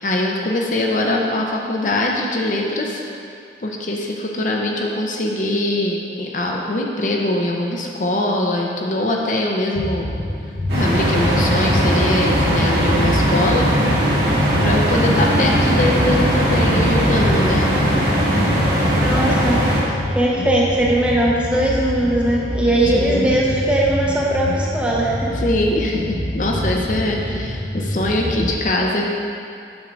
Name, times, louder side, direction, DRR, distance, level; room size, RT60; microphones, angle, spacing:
voice 1, 0.0-3.0 3.6-10.1 10.7-14.1 14.6-17.8 22.8-23.3 25.3-29.1, left 1 dB, 45° left, -1 dB, 0.6 m, -22 dB
sound 1, 9.8-28.5, left 1 dB, 75° left, 1.1 m, -27 dB
sound 2, 10.7-19.8, equal, 75° right, 1.8 m, -18 dB
voice 2, 18.9-25.3, right 1 dB, 5° right, -4 dB, 0.7 m, -19 dB
7.4 x 3.7 x 6.0 m, 2.5 s
head